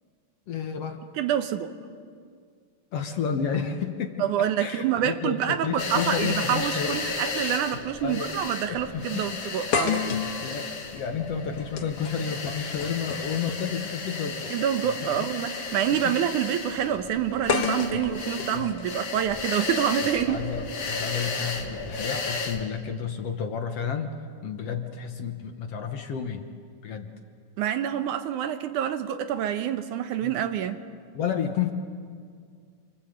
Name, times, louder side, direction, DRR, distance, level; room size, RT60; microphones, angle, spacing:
voice 1, 0.5-1.0 2.9-7.0 8.0-8.3 8.7-9.3 9.8-9.9 10.4-14.5 14.8-15.2 15.9-16.2 16.5-16.6 17.9-18.0 18.5-18.7 20.3-24.2 24.4-26.5 26.8-27.1 30.2-30.4 31.1-31.7, left 7 dB, 60° left, 5 dB, 1.9 m, -31 dB
voice 2, 1.2-1.7 4.2-10.2 14.5-20.5 27.6-30.8, right 10 dB, 75° right, 9 dB, 2.4 m, -27 dB
sound 1, 5.8-22.6, left 4 dB, 40° left, 2.4 m, -34 dB
sound 2, 7.7-7.9 8.3-8.4 9.7-13.8 14.9-15.1 17.5-19.5, left 7 dB, 75° left, 2.9 m, -31 dB
28.0 x 24.5 x 7.9 m, 2.1 s
omnidirectional pair, 3.7 m